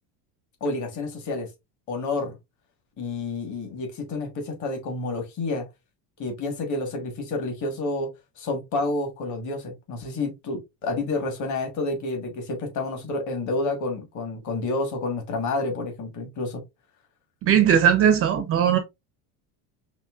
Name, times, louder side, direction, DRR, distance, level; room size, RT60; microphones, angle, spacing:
voice 1, 0.6-1.5 1.9-2.3 3.0-5.7 6.2-8.1 8.4-16.6, left 2 dB, 35° left, 1.3 m, -29 dB
voice 2, 17.4-18.8, right 9 dB, 30° right, 0.4 m, -18 dB
5.4 x 2.9 x 2.3 m
cardioid pair, 170°, 48 cm